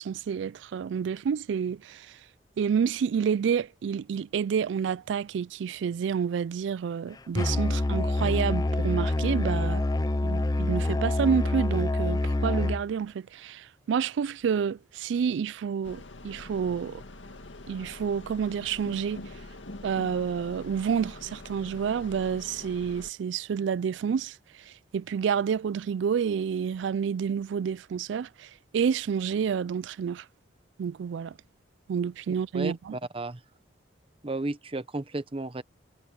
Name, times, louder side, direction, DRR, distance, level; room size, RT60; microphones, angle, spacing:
voice 1, 0.0-2.2 2.6-9.9 10.2-17.0 17.7-19.3 19.8-24.4 24.7-30.3 30.8-31.4 31.9-33.0, right 7 dB, 75° right, 0.3 m, -29 dB
Musical instrument, 7.4-12.9, left 2 dB, 20° left, 0.5 m, -26 dB
sound 1, 15.8-23.1, left 2 dB, 85° left, 2.1 m, -44 dB
voice 2, 32.3-33.4 34.2-35.6, right 2 dB, 30° right, 0.9 m, -34 dB
head